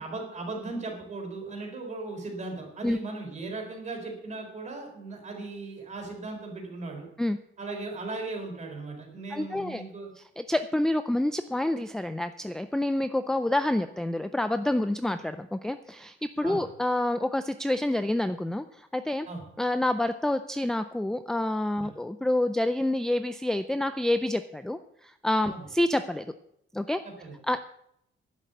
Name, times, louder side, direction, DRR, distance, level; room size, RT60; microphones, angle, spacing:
voice 1, 0.0-7.1 7.6-10.1 16.4-16.6 19.3-19.4 21.8-21.9 25.5-25.6 27.0-27.6, right 3 dB, 35° right, 1 dB, 3.9 m, -37 dB
voice 2, 9.3-9.8 10.4-19.3 19.6-26.3 26.7-27.0 27.5-27.6, left 1 dB, 5° left, 10 dB, 0.4 m, -28 dB
11.0 x 7.4 x 8.3 m, 0.75 s
wide cardioid pair, 165°, 20 cm